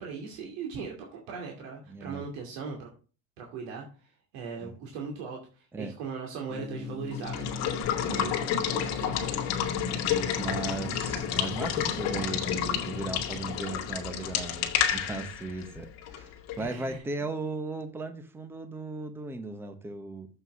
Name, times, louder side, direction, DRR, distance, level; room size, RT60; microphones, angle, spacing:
voice 1, 0.0-2.9 3.4-3.8 4.3-7.5 7.9-8.4 8.7-9.3 16.6-17.0, right 5 dB, 80° right, 2.6 m, -39 dB
voice 2, 1.9-2.3 4.6-4.7 5.7-5.9 8.0-8.3 10.4-20.3, right 3 dB, 5° right, 0.8 m, -37 dB
sound 1, 6.5-13.6, left 5 dB, 10° left, 0.3 m, -40 dB
Water / Water tap faucet / Liquid, 7.1-16.7, left 9 dB, 55° left, 2.0 m, -30 dB
7.6 x 5.9 x 6.1 m
cardioid pair, 175°, 31 cm